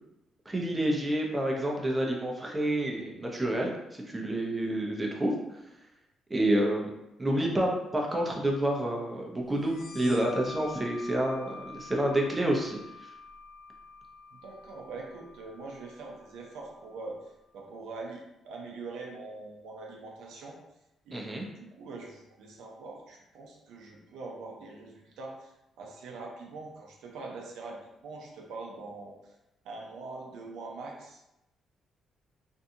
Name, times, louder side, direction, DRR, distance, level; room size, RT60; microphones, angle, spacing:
voice 1, 0.5-5.3 6.3-6.9 7.2-13.1 21.1-21.5, right 1 dB, 20° right, 0 dB, 0.6 m, -29 dB
sound 1, 9.6-16.9, left 4 dB, 65° left, 0.5 m, -47 dB
voice 2, 14.3-20.6 21.1-29.4 29.6-31.2, right 3 dB, 85° right, -1 dB, 0.5 m, -43 dB
2.6 x 2.2 x 2.7 m, 0.90 s
cardioid pair, 90°, 0 cm